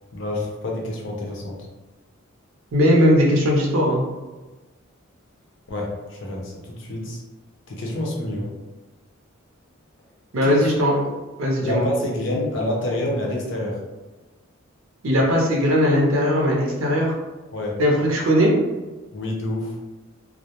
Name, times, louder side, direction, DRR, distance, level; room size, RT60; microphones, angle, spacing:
voice 1, 0.1-1.7 5.7-7.2 7.7-8.5 10.4-10.7 11.6-13.8 17.5-17.8 19.1-19.8, left 1 dB, 60° left, -1 dB, 0.6 m, -27 dB
voice 2, 2.7-4.0 10.3-11.0 11.4-11.9 15.0-17.1 17.8-18.5, equal, 75° right, -1 dB, 0.5 m, -19 dB
2.3 x 2.0 x 2.8 m, 1.2 s
head